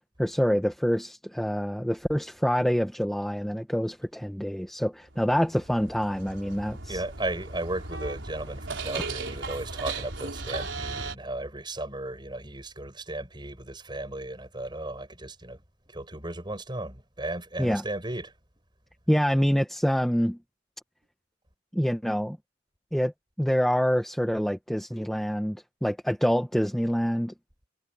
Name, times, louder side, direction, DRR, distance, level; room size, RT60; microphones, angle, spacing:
voice 1, 0.0-7.0 17.6-17.8 19.1-20.4 21.7-22.4 22.9-23.1 23.4-27.3, equal, ahead, 1.0 m, -26 dB
sound 1, 5.1-11.1, right 3 dB, 70° right, 4.6 m, -37 dB
voice 2, 6.9-18.3, right 1 dB, 25° right, 7.0 m, -35 dB
head